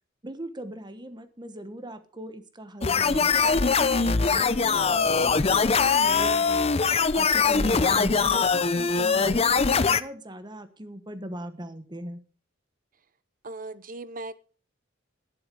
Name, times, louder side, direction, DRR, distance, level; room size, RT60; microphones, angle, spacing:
voice 1, 0.2-12.2, right 1 dB, 20° right, 10 dB, 1.2 m, -40 dB
sound 1, 2.8-10.0, left 5 dB, 30° left, 0.6 m, -22 dB
Acoustic guitar, 3.1-6.4, left 1 dB, 70° right, 2.7 m, -47 dB
voice 2, 13.4-14.3, right 2 dB, 45° right, 16 dB, 0.8 m, -38 dB
12.0 x 10.5 x 5.4 m, 0.39 s
head